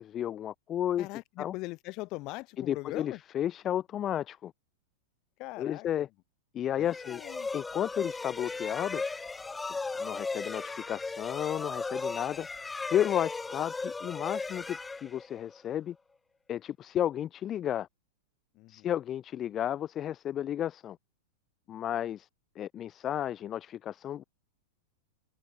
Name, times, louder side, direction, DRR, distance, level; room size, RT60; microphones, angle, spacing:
voice 1, 0.0-1.1 1.4-1.5 2.6-4.5 5.6-6.1 6.5-7.2 7.5-9.0 10.0-12.5 12.9-16.0 16.5-17.9 18.7-21.0 21.7-22.3 22.6-24.2, left 10 dB, 30° left, 2.3 m, -32 dB
voice 2, 1.0-3.2 5.4-6.1 6.8-7.5 18.5-18.9 21.7-21.9, left 22 dB, 45° left, 5.3 m, -41 dB
sound 1, 6.8-15.6, left 3 dB, 10° left, 1.4 m, -37 dB
hypercardioid pair, 125°, 0 cm